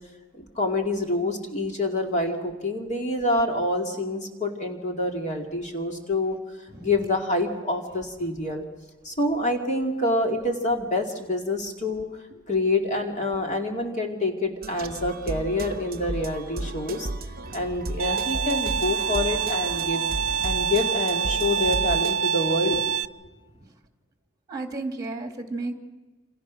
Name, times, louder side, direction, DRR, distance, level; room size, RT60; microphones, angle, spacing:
voice 1, 0.3-6.4 6.8-8.6 9.0-12.1 12.5-17.1 17.5-20.0 20.4-23.0, left 2 dB, 35° left, 2 dB, 2.5 m, -27 dB
sound 1, 14.6-22.2, right 2 dB, 45° right, 0.9 m, -34 dB
Bowed string instrument, 18.0-23.1, right 7 dB, 70° right, 0.7 m, -26 dB
voice 2, 24.5-25.7, right 3 dB, 20° right, 4 dB, 2.9 m, -34 dB
28.5 x 26.5 x 6.3 m, 1.2 s
head